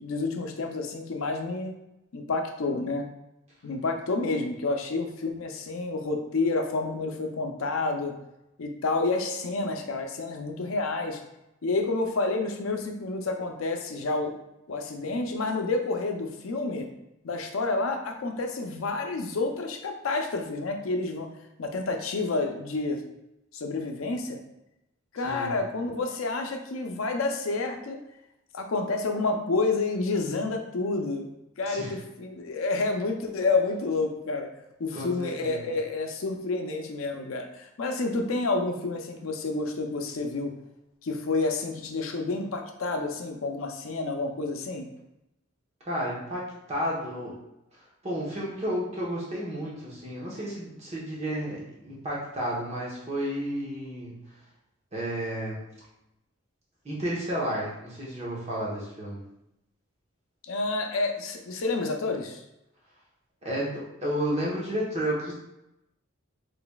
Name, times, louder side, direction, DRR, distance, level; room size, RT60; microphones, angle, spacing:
voice 1, 0.0-1.7 2.1-3.0 3.6-8.1 8.6-11.2 11.6-14.3 14.7-16.9 17.2-21.3 21.6-23.0 23.5-24.4 25.1-28.0 28.5-31.3 31.6-34.5 34.8-40.5 41.0-44.9 60.4-62.4, left 3 dB, 85° left, 4 dB, 0.5 m, -29 dB
voice 2, 34.9-35.7 45.9-47.3 47.7-54.1 54.9-55.6 56.8-59.2 63.4-65.3, equal, 35° right, -5 dB, 1.0 m, -32 dB
3.9 x 3.3 x 2.3 m, 0.87 s
head